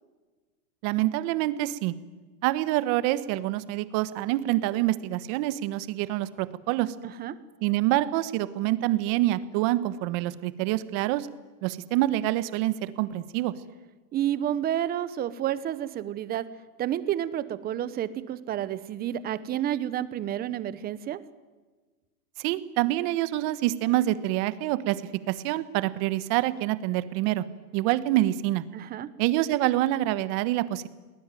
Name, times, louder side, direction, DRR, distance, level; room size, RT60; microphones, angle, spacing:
voice 1, 0.8-1.9 2.4-6.9 7.6-11.3 11.6-13.5 22.4-25.0 25.3-27.4 27.7-28.6 29.2-30.9, right 15 dB, 35° right, 15 dB, 1.4 m, -26 dB
voice 2, 7.0-7.4 14.1-16.4 16.8-21.2 28.7-29.1, right 11 dB, 20° right, 15 dB, 1.0 m, -30 dB
28.0 x 19.0 x 9.2 m, 1.3 s
supercardioid pair, 150°, 48 cm